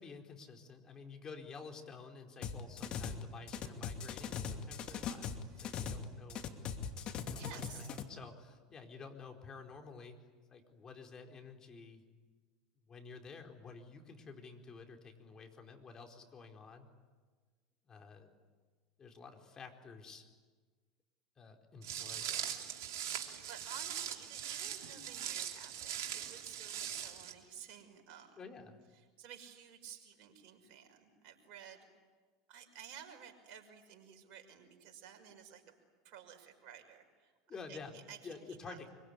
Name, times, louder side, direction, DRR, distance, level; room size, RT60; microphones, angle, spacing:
voice 1, 0.0-5.3 5.6-6.4 7.3-10.2 10.5-12.0 12.9-16.9 17.8-18.3 19.0-20.3 21.4-22.6 28.4-28.8 37.5-38.0 38.2-38.9, left 4 dB, 30° left, 3 dB, 4.5 m, -51 dB
sound 1, 2.4-3.2 3.5-6.0 6.3-8.0, left 7 dB, 45° left, 2.6 m, -40 dB
voice 2, 7.4-7.9 23.0-28.4 29.0-31.9 32.5-35.7 36.0-37.3 37.7-38.8, right 8 dB, 55° right, 4 dB, 5.9 m, -53 dB
Walk footsteps, 21.8-27.3, right 10 dB, 75° right, 3.1 m, -41 dB
25.0 x 24.0 x 9.9 m, 1.4 s
hypercardioid pair, 85°, 2 cm